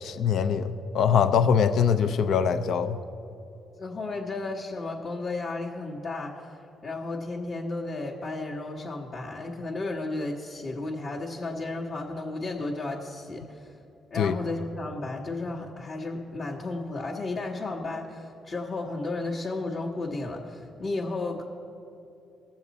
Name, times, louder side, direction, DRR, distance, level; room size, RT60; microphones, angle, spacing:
voice 1, 0.0-3.0 14.1-14.3, left 7 dB, 75° left, 9 dB, 0.6 m, -23 dB
voice 2, 3.8-6.5 6.8-13.7 14.1-21.4, left 2 dB, 50° left, -4 dB, 1.3 m, -33 dB
18.5 x 7.2 x 4.1 m, 2.8 s
cardioid pair, 90°, 0 cm